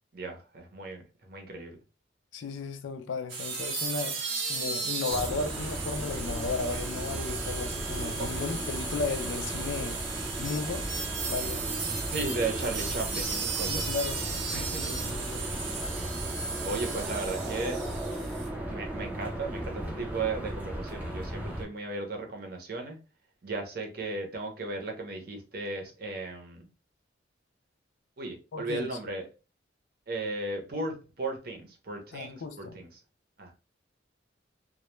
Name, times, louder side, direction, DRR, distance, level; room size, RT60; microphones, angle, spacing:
voice 1, 0.1-1.8 8.2-8.3 12.1-13.9 14.5-15.1 16.0-16.1 16.6-17.8 18.7-23.0 23.4-26.7 28.2-29.3 30.1-32.9 33.4-33.5, right 3 dB, 50° right, 0.6 m, -36 dB
voice 2, 2.3-4.2 4.5-10.0 10.4-10.9 11.2-11.6 13.7-14.2 15.0-15.4 28.5-28.9 32.1-32.8, left 4 dB, 80° left, 0.4 m, -34 dB
sound 1, 3.3-18.5, right 4 dB, 90° right, 0.7 m, -35 dB
sound 2, 5.1-21.6, right 1 dB, 10° right, 0.5 m, -36 dB
2.1 x 2.1 x 3.0 m
head